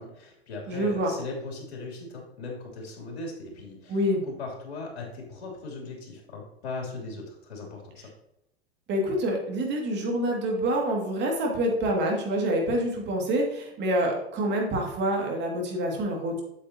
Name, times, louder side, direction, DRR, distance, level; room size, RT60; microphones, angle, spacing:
voice 1, 0.0-4.0 4.2-8.1, left 3 dB, 70° left, -1 dB, 3.1 m, -38 dB
voice 2, 0.7-1.1 3.9-4.2 8.9-16.4, right 1 dB, 35° right, 0 dB, 2.3 m, -27 dB
8.3 x 7.4 x 2.9 m, 0.83 s
hypercardioid pair, 95°, 32 cm